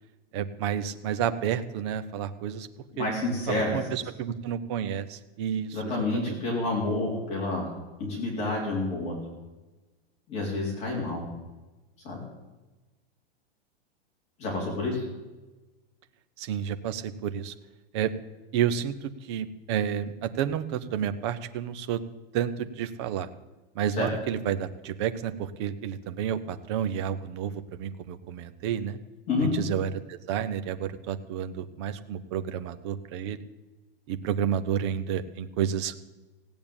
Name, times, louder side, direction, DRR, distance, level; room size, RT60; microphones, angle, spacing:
voice 1, 0.3-2.7 3.0-3.1 3.5-5.8 6.1-6.3 16.4-17.5 17.9-18.1 18.5-22.0 22.3-23.3 23.7-29.0 29.4-33.4 34.1-36.1, right 9 dB, 25° right, 11 dB, 0.6 m, -30 dB
voice 2, 2.9-3.7 5.7-7.7 8.0-9.2 10.3-11.2 12.0-12.2 14.4-15.0 24.0-24.1 29.3-29.5, left 2 dB, 20° left, -2 dB, 3.6 m, -29 dB
16.0 x 8.7 x 8.8 m, 1.1 s
supercardioid pair, 175°, 31 cm